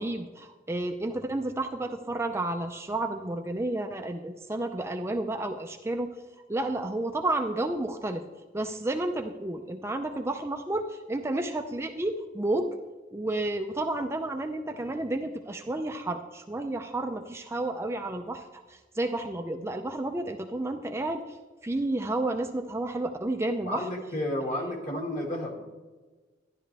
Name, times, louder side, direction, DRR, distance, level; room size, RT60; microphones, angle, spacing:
voice 1, 0.0-6.1 6.5-8.2 8.5-12.8 13.1-21.4 21.6-23.9, right 2 dB, 15° right, 5 dB, 0.5 m, -31 dB
voice 2, 23.6-25.6, left 1 dB, 45° left, 0 dB, 2.3 m, -31 dB
12.0 x 11.0 x 3.4 m, 1.3 s
head